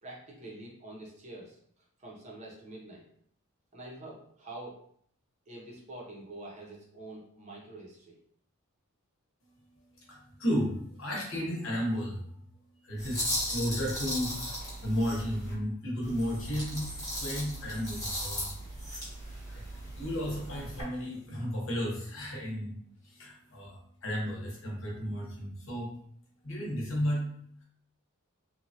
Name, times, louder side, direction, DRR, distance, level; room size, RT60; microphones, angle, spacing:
voice 1, 0.0-1.6 2.0-3.0 3.7-4.8 5.5-8.2, right 2 dB, 30° right, -3 dB, 0.6 m, -46 dB
voice 2, 10.0-12.2 12.8-14.6 14.8-18.5 18.9-19.0 19.5-19.6 20.0-22.8 23.0-25.9 26.4-27.3, equal, 60° left, -2 dB, 0.9 m, -33 dB
sound 1, 13.0-15.5 16.0-20.8, equal, 15° left, 0.9 m, -37 dB
3.1 x 2.1 x 2.7 m, 0.65 s
head